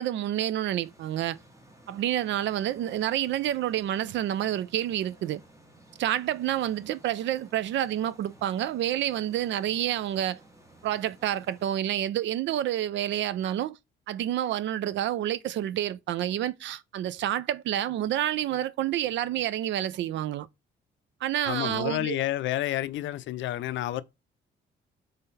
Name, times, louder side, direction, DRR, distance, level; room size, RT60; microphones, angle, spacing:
voice 1, 0.0-1.4 1.9-5.4 6.0-10.4 10.8-13.8 14.1-20.5 21.2-22.2, right 12 dB, 70° right, 0.4 m, -28 dB
sound 1, 0.8-11.7, right 1 dB, 15° right, 1.1 m, -55 dB
voice 2, 21.4-24.0, left 13 dB, 70° left, 0.4 m, -30 dB
3.7 x 3.3 x 4.1 m
cardioid pair, 90°, 20 cm